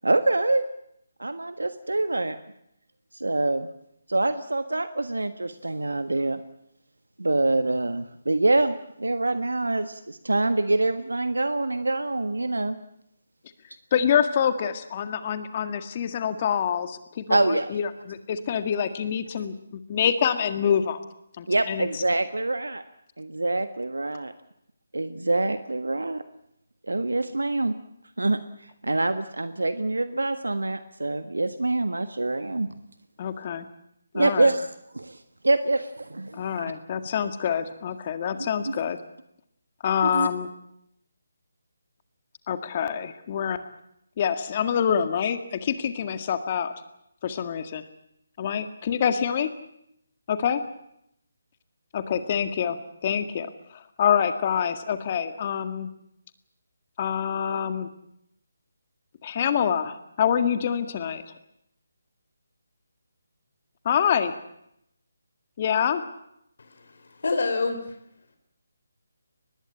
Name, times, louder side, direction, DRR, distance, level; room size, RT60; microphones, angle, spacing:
voice 1, 0.0-0.6 1.2-2.4 3.1-3.7 4.1-6.4 7.2-12.8 17.3-17.7 21.5-22.8 23.2-24.3 24.9-26.2 26.8-27.7 28.2-32.7 34.1-36.7 38.4-38.7 40.0-40.3, right 2 dB, 80° right, 11 dB, 1.5 m, -25 dB
voice 2, 13.9-19.5 19.9-21.0 21.4-21.9 33.2-33.7 34.1-34.5 36.3-39.0 39.8-40.5 42.5-43.6 44.2-46.7 47.2-47.8 48.4-49.5 50.3-50.6 51.9-53.5 53.7-55.9 57.0-57.9 59.2-61.2 63.9-64.3 65.6-66.0, left 8 dB, 35° left, 10 dB, 1.9 m, -26 dB
voice 3, 66.6-68.0, left 3 dB, 60° left, 8 dB, 3.3 m, -28 dB
23.5 x 20.5 x 8.6 m, 0.76 s
figure-of-eight pair, 150°, 0 cm